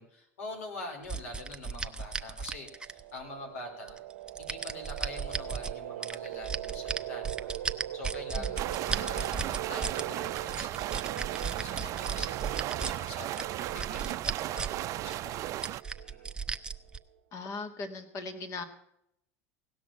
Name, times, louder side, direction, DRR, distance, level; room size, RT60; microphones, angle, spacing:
voice 1, 0.0-4.0 4.4-10.7 11.2-15.7 16.0-16.3, left 2 dB, 90° left, 2 dB, 4.0 m, -45 dB
sound 1, 1.1-3.2 3.9-5.7 6.0-10.0 10.4-12.9 13.3-14.8 15.1-15.2 15.6-17.0, right 4 dB, 10° right, 0.7 m, -35 dB
sound 2, 2.3-16.9, right 13 dB, 85° right, 0.7 m, -42 dB
sound 3, 8.6-15.8, right 14 dB, 45° right, 0.4 m, -36 dB
voice 2, 17.3-18.6, left 3 dB, 45° left, 8 dB, 2.0 m, -39 dB
17.5 x 6.2 x 8.7 m, 0.77 s
supercardioid pair, 105°, 7 cm